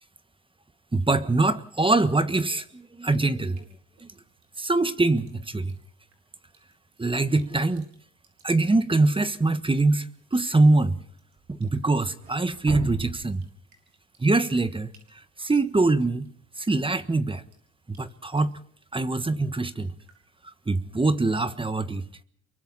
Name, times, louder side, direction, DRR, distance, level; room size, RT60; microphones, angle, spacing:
voice 1, 0.9-3.6 4.0-4.1 4.6-5.7 7.0-7.9 8.4-11.0 11.5-13.4 14.2-16.3 16.6-17.4 17.9-18.6 18.9-19.9 20.7-22.1, right 2 dB, 15° right, 1.4 m, -24 dB
Drip, 3.1-21.3, right 4 dB, 65° right, 6.1 m, -46 dB
28.5 x 23.5 x 4.2 m
cardioid pair, 90°, 30 cm